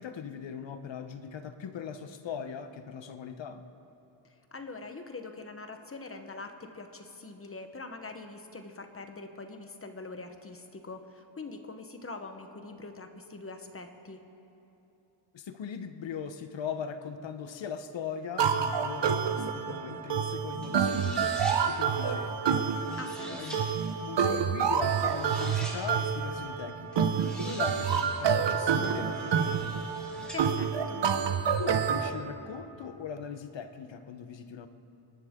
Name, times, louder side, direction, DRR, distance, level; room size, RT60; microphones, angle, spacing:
voice 1, 0.0-3.6 15.3-22.6 23.3-23.7 24.0-27.1 27.4-29.9 31.6-34.7, left 7 dB, 70° left, 9 dB, 1.0 m, -40 dB
voice 2, 4.5-14.2 23.0-23.7 30.3-31.0, left 3 dB, 30° left, 6 dB, 1.0 m, -43 dB
sound 1, 18.4-32.1, right 7 dB, 60° right, 0.9 m, -28 dB
sound 2, 20.6-21.6 22.5-23.6 24.8-25.8 26.9-28.1 28.8-30.4, equal, ahead, 4.0 m, -45 dB
28.0 x 11.5 x 3.7 m, 2.9 s
wide cardioid pair, 125°, 47 cm